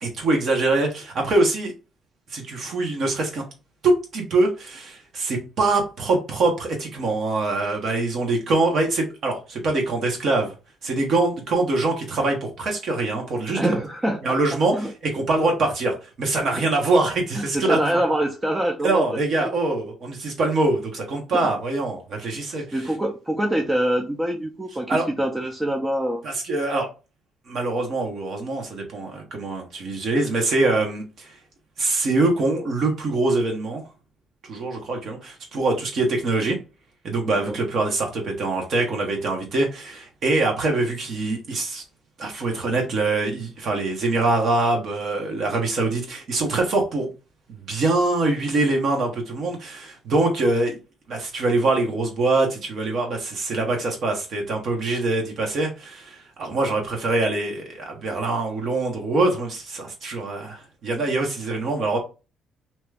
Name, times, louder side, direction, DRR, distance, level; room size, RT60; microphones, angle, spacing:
voice 1, 0.0-1.7 2.3-3.4 3.8-10.5 10.8-13.7 14.2-18.0 18.8-22.9 24.9-25.1 26.2-26.9 27.5-31.4 31.8-33.8 34.5-36.6 37.0-41.8 42.2-47.1 47.6-50.8 51.1-62.0, right 2 dB, 65° right, 1.0 m, -24 dB
voice 2, 13.5-14.4 14.7-14.9 16.5-16.6 17.4-19.1 21.3-21.4 22.5-26.2 37.3-37.6, right 1 dB, 15° right, 0.4 m, -25 dB
2.8 x 2.3 x 3.3 m
cardioid pair, 95°, 0 cm